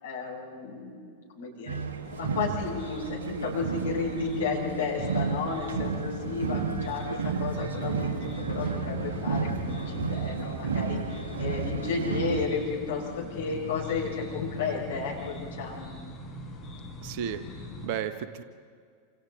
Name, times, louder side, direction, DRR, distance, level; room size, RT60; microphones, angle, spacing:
voice 1, 0.0-1.8 2.2-7.0 7.4-8.2 8.5-13.0 13.3-15.9, left 4 dB, 60° left, -1 dB, 5.6 m, -33 dB
sound 1, 1.7-12.5, right 5 dB, 65° right, 1.5 m, -32 dB
sound 2, 2.0-17.9, left 3 dB, 20° left, 5.1 m, -41 dB
voice 2, 17.0-18.4, right 8 dB, 45° right, 10 dB, 1.2 m, -34 dB
28.0 x 27.5 x 3.9 m, 2.1 s
figure-of-eight pair, 90°, 0 cm